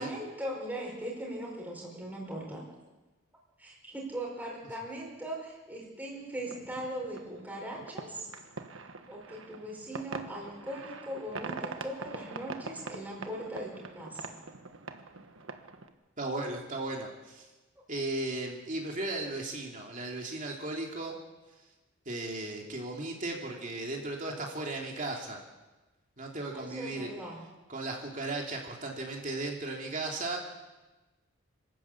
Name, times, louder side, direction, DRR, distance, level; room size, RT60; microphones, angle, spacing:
voice 1, 0.0-2.6 3.6-8.3 9.1-14.4 26.5-27.4, right 1 dB, 10° right, -3 dB, 4.8 m, -39 dB
sound 1, 6.4-15.9, right 3 dB, 70° right, 1.5 m, -44 dB
voice 2, 16.2-17.5 17.9-21.2 22.1-25.4 26.2-27.1 27.7-30.4, right 2 dB, 40° right, 0 dB, 2.8 m, -36 dB
27.0 x 13.0 x 8.4 m, 1.2 s
head